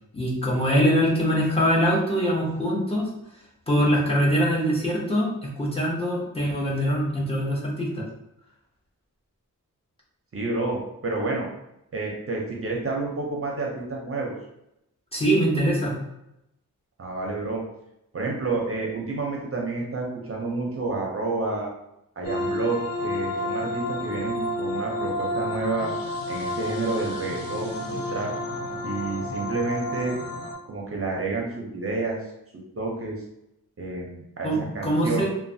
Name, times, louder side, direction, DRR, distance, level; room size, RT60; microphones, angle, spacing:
voice 1, 0.1-3.1 3.7-8.0 15.1-15.9 34.4-35.2, equal, 15° left, -6 dB, 0.7 m, -23 dB
voice 2, 10.3-11.5 11.9-14.3 17.0-17.6 18.1-21.7 22.2-25.9 26.3-28.3 28.8-30.1 30.7-32.2 32.8-33.2 33.8-35.2, right 3 dB, 45° right, -1 dB, 0.5 m, -29 dB
sound 1, 22.2-30.5, left 1 dB, 85° left, 0.6 m, -30 dB
3.1 x 2.2 x 2.6 m, 0.85 s
wide cardioid pair, 140°, 33 cm